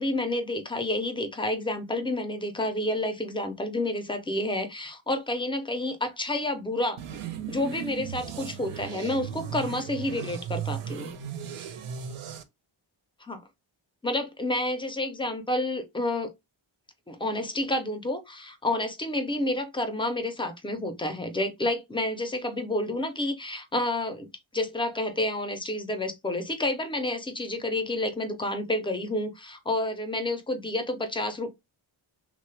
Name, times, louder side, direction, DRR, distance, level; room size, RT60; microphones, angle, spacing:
voice 1, 0.0-7.0 7.5-11.1 13.2-13.4 14.0-16.3 17.1-31.5, left 1 dB, 10° left, 0.3 m, -29 dB
sound 1, 7.0-12.4, right 8 dB, 90° right, 0.6 m, -36 dB
3.1 x 2.0 x 3.1 m
wide cardioid pair, 155°, 50 cm